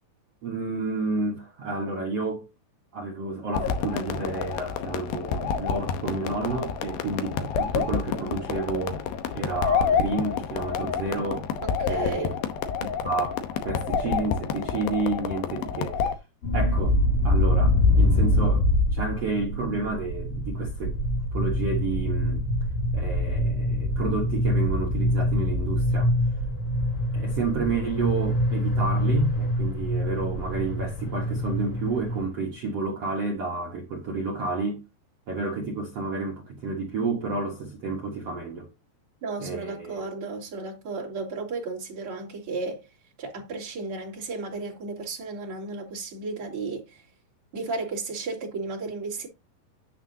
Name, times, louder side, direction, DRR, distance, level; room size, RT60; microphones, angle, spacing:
voice 1, 0.4-2.5 2.9-9.1 9.3-11.5 11.9-12.4 12.8-16.1 16.5-17.0 17.2-18.6 18.9-21.0 21.3-22.4 22.9-26.1 27.1-34.8 35.3-38.7 39.4-40.1, right 3 dB, 70° right, 1.4 m, -30 dB
sound 1, 3.5-16.2, left 6 dB, 75° left, 2.4 m, -29 dB
voice 2, 11.6-12.3 39.2-42.9 43.2-47.0 47.5-49.3, right 3 dB, 35° right, 3.2 m, -34 dB
sound 2, 16.4-32.3, left 1 dB, 50° left, 4.4 m, -24 dB
9.6 x 8.1 x 2.8 m
omnidirectional pair, 5.1 m